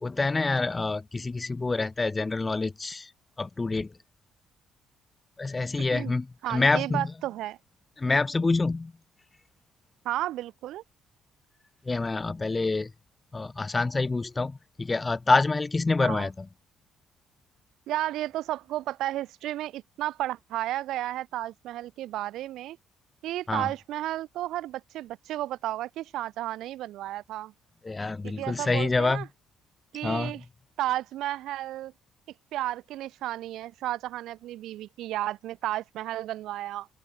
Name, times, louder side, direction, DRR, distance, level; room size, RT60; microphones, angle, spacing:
voice 1, 0.0-3.1 3.4-3.9 5.4-7.0 8.0-8.9 11.9-12.9 13.3-16.3 23.5-23.7 27.8-29.2 30.0-30.3, left 3 dB, 20° left, 0.3 m, -26 dB
voice 2, 6.4-7.6 10.0-10.8 16.0-16.3 17.9-22.8 23.2-27.5 28.2-29.3 29.9-30.4 30.8-31.9 32.5-36.9, right 14 dB, 75° right, 1.3 m, -33 dB
open air
cardioid pair, 105°, 0 cm